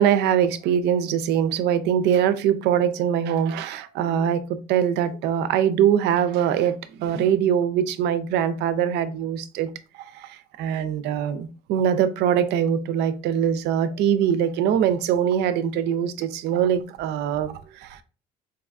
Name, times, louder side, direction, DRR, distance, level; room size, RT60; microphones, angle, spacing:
voice 1, 0.0-9.7 10.6-17.9, right 9 dB, 80° right, 13 dB, 0.4 m, -22 dB
4.6 x 2.3 x 2.4 m, 0.34 s
cardioid pair, 110°, 17 cm